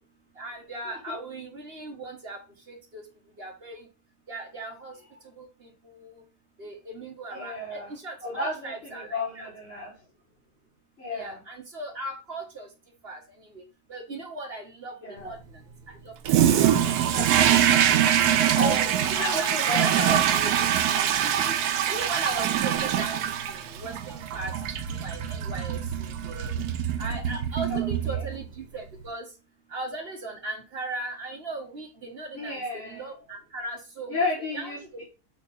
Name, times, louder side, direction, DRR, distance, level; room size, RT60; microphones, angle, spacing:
voice 1, 0.4-2.4 2.7-3.0 3.4-3.8 4.3-4.9 5.4-6.2 6.6-9.5 11.1-12.7 13.0-13.2 13.5-13.6 13.9-14.9 15.3-15.4 16.0-16.6 18.7-20.2 21.5-21.6 21.9-24.5 25.0-25.8 26.2-26.5 27.0-29.2 29.7-34.3 34.5-34.7, right 2 dB, 40° right, 2 dB, 1.4 m, -37 dB
voice 2, 7.3-7.9 8.2-9.9 11.0-11.4 15.0-15.4 17.1-17.4 18.5-18.9 19.1-20.5 27.7-28.2 32.3-33.1 34.1-35.0, left 1 dB, 45° left, -9 dB, 3.5 m, -32 dB
Toilet flush, 16.2-28.6, right 10 dB, 80° right, 1.2 m, -24 dB
7.4 x 3.4 x 4.1 m, 0.32 s
omnidirectional pair, 1.6 m